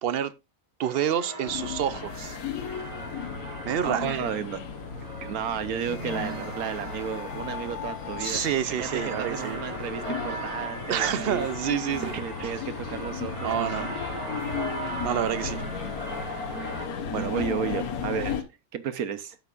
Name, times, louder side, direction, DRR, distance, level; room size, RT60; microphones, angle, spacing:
voice 1, 0.0-0.3 0.8-2.4 3.6-4.2 8.2-9.6 10.9-12.5 13.4-14.0 15.0-15.6, right 9 dB, 60° right, 0.6 m, -28 dB
sound 1, 0.8-16.9, right 1 dB, 20° right, 2.8 m, -39 dB
sound 2, 1.4-18.4, left 6 dB, 85° left, 1.6 m, -35 dB
voice 2, 3.8-4.6 5.2-8.4 8.7-11.5 12.1-13.7 17.1-18.4 18.7-19.4, right 8 dB, 85° right, 1.4 m, -33 dB
12.5 x 7.9 x 2.5 m
omnidirectional pair, 1.5 m